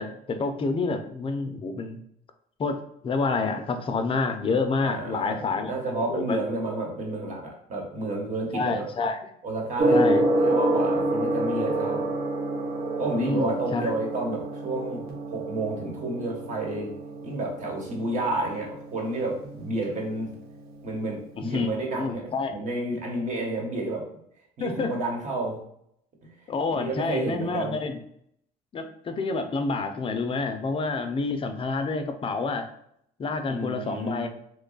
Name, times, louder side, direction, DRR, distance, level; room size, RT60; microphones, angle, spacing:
voice 1, 0.0-2.0 2.6-2.8 3.0-5.7 6.1-6.4 8.5-9.2 9.9-10.2 13.2-13.9 21.4-21.7 22.0-22.5 24.6-24.9 26.5-28.0 28.7-32.7 33.2-34.3, left 4 dB, 30° left, 6 dB, 0.5 m, -28 dB
voice 2, 4.8-8.9 9.4-12.1 13.0-15.0 15.3-16.9 17.2-20.3 20.8-24.1 24.6-25.6 26.7-27.8 33.5-34.3, right 2 dB, 45° right, 0 dB, 1.2 m, -30 dB
Gong, 9.8-21.8, right 1 dB, 70° right, 0.8 m, -29 dB
3.1 x 2.2 x 3.9 m, 0.69 s
cardioid pair, 110°, 17 cm